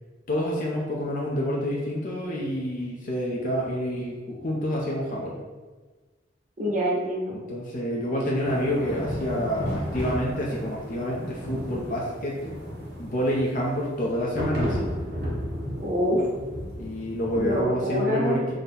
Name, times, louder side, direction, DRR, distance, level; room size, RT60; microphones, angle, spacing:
voice 1, 0.3-5.4 7.3-12.4 13.0-14.9 16.8-18.5, equal, 45° left, -3 dB, 0.5 m, -28 dB
voice 2, 6.6-7.3 15.8-16.3 17.4-18.4, equal, 40° right, -4 dB, 0.7 m, -25 dB
sound 1, 8.4-17.6, equal, 60° right, 1.0 m, -33 dB
3.7 x 2.2 x 4.1 m, 1.3 s
head